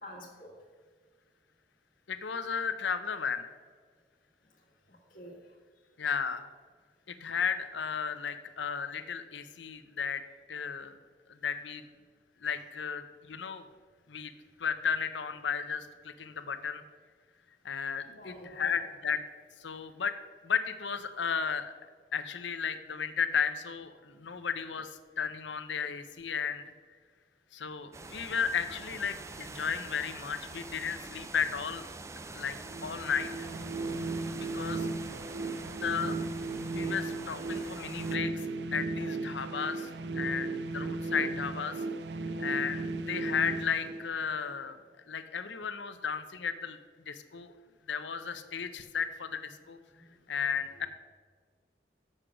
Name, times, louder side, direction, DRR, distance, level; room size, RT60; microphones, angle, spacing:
voice 1, 0.0-0.5 4.9-5.4 18.0-18.8 49.9-50.2, equal, 50° left, -3 dB, 1.7 m, -48 dB
voice 2, 2.1-3.5 6.0-6.4 7.1-10.2 10.5-10.9 11.3-11.8 12.4-13.6 14.1-14.3 14.6-16.8 17.6-19.2 19.6-20.2 20.4-21.7 22.1-26.6 27.5-31.9 32.3-32.6 32.8-33.5 34.5-34.9 35.8-36.1 36.7-38.5 38.7-41.8 42.4-44.8 45.1-46.8 47.1-47.5 47.9-49.8 50.3-50.9, left 6 dB, 85° left, 11 dB, 0.7 m, -34 dB
sound 1, 27.9-38.2, right 3 dB, 15° right, 0.3 m, -45 dB
sound 2, 32.6-44.6, right 3 dB, 70° right, 0.5 m, -36 dB
7.9 x 6.5 x 6.1 m, 1.5 s
head